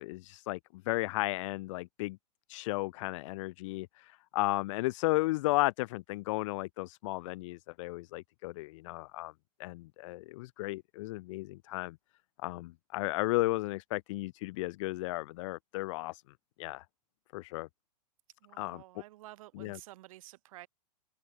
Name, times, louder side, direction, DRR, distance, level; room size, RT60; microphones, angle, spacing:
voice 1, 0.0-2.2 2.5-9.3 9.6-12.0 12.4-16.2 16.6-16.8 17.3-17.7 18.6-18.8 19.5-19.8, left 20 dB, 45° left, 1.3 m, -34 dB
voice 2, 18.4-20.7, right 17 dB, 55° right, 6.7 m, -51 dB
open air
figure-of-eight pair, 110°, 21 cm